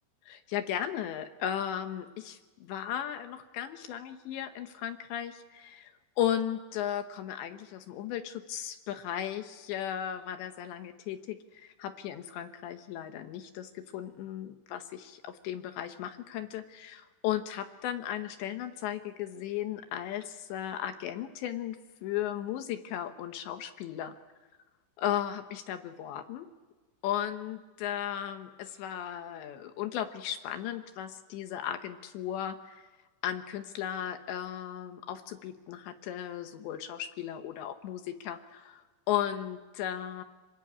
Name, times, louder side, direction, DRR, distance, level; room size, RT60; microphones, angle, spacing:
voice 1, 0.3-24.1 25.0-26.5 27.0-32.9 33.2-40.2, left 10 dB, 75° left, 8 dB, 3.0 m, -36 dB
26.0 x 24.0 x 8.6 m, 1.2 s
omnidirectional pair, 5.8 m